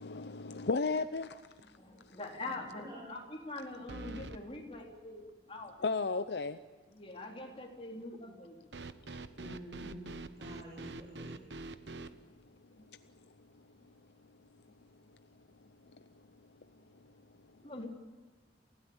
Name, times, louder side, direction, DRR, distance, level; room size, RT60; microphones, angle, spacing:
voice 1, 0.0-1.4 5.8-6.6 9.1-9.2, left 4 dB, 70° left, 0.7 m, -33 dB
sound 1, 0.8-1.2 1.6-1.7 3.9-4.4 8.7-12.1, right 2 dB, 80° right, 1.0 m, -45 dB
voice 2, 1.7-6.4 6.9-8.6 11.9-12.1 12.8-12.9 17.6-17.9, left 2 dB, 35° left, 4.0 m, -44 dB
voice 3, 2.8-3.2 9.3-10.1 10.4-11.3, equal, 25° right, 6.3 m, -48 dB
29.5 x 16.5 x 8.9 m
head